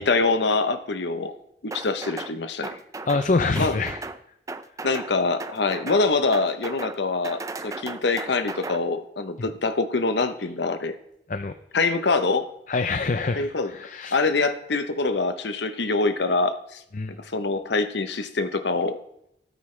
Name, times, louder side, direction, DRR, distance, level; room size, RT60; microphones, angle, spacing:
voice 1, 0.0-1.4 1.6-2.8 3.6-3.8 4.8-11.0 11.7-12.5 13.4-13.7 14.1-16.8 17.2-19.0, left 3 dB, 75° left, 10 dB, 0.9 m, -24 dB
sound 1, 1.7-2.3 2.6-3.3 3.6-4.2 4.5-5.1 5.4-6.0 6.3-7.0 7.2-8.8, right 3 dB, 20° right, 0.4 m, -35 dB
voice 2, 3.1-4.0 9.4-9.5 11.3-11.5 12.7-14.2 16.9-17.2, left 3 dB, 45° left, 9 dB, 0.5 m, -25 dB
13.5 x 12.5 x 3.3 m, 0.78 s
head